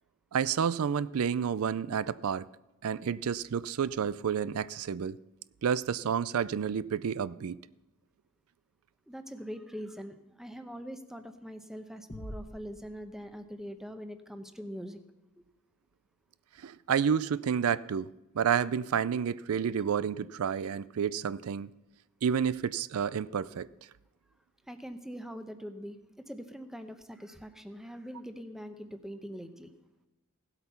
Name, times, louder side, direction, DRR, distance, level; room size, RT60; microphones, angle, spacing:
voice 1, 0.3-2.5 2.8-5.2 5.6-7.6 16.6-21.7 22.2-23.7, right 7 dB, 80° right, 0.4 m, -30 dB
voice 2, 9.1-15.0 24.7-26.0 26.3-29.7, equal, ahead, 0.9 m, -43 dB
sound 1, 12.1-13.8, equal, 35° left, 1.3 m, -46 dB
16.5 x 8.2 x 5.7 m
head